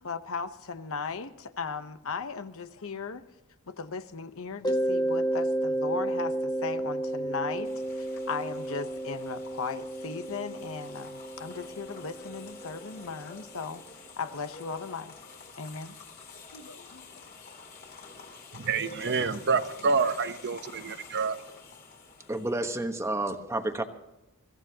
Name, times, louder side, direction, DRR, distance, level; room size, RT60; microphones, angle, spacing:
voice 1, 0.0-3.2 3.7-15.1 15.6-16.0 16.5-17.1, left 5 dB, 65° left, 11 dB, 0.9 m, -37 dB
Mallet percussion, 4.6-13.2, right 1 dB, 20° left, 1.2 m, -32 dB
sound 1, 7.6-22.8, left 3 dB, 45° left, 3.2 m, -48 dB
voice 2, 18.5-21.4, right 5 dB, 50° right, 10 dB, 0.9 m, -28 dB
voice 3, 22.3-23.8, right 2 dB, 15° right, 6 dB, 1.2 m, -30 dB
23.0 x 15.0 x 2.8 m, 0.97 s
head